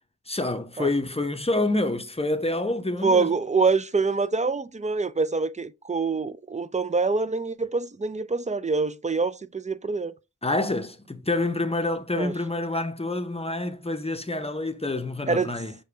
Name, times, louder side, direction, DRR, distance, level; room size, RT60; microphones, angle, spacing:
voice 1, 0.3-3.4 10.4-15.7, left 2 dB, 20° left, 0.6 m, -27 dB
voice 2, 3.0-10.1 12.2-12.3 15.3-15.5, right 4 dB, 25° right, 0.4 m, -25 dB
6.6 x 2.2 x 3.2 m
cardioid pair, 50°, 30 cm